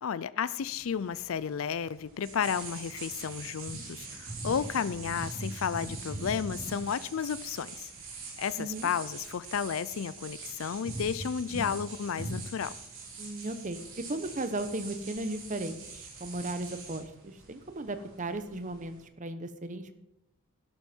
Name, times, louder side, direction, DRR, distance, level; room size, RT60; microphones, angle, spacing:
voice 1, 0.0-7.9 8.4-12.8, left 7 dB, 70° left, 17 dB, 0.4 m, -32 dB
sound 1, 0.6-19.0, right 2 dB, 65° right, 4.7 m, -42 dB
voice 2, 8.6-8.9 13.2-13.8 14.1-19.9, right 2 dB, 35° right, 10 dB, 1.0 m, -36 dB
12.5 x 11.0 x 4.5 m, 0.88 s
head